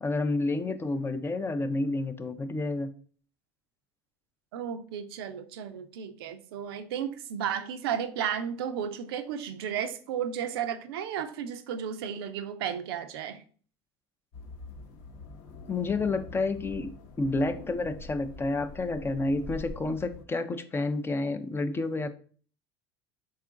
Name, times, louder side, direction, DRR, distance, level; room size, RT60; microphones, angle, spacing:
voice 1, 0.0-2.9 15.7-16.9 17.2-22.1, left 2 dB, 20° left, 0.4 m, -29 dB
voice 2, 4.5-13.4, right 8 dB, 80° right, 0.4 m, -33 dB
sound 1, 14.3-20.2, left 3 dB, 60° left, 0.8 m, -45 dB
3.6 x 2.4 x 3.6 m
supercardioid pair, 95°, 12 cm